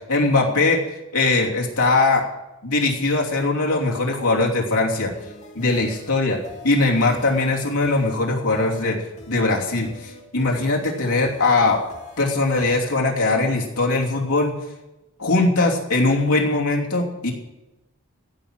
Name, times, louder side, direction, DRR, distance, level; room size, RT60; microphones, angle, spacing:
voice 1, 0.1-2.2 2.6-5.1 5.5-9.0 9.3-11.8 12.2-14.6 15.2-17.3, left 3 dB, 85° left, -1 dB, 2.9 m, -21 dB
sound 1, 5.1-12.7, left 1 dB, 30° left, 2.8 m, -43 dB
15.0 x 6.3 x 9.0 m, 1.0 s
head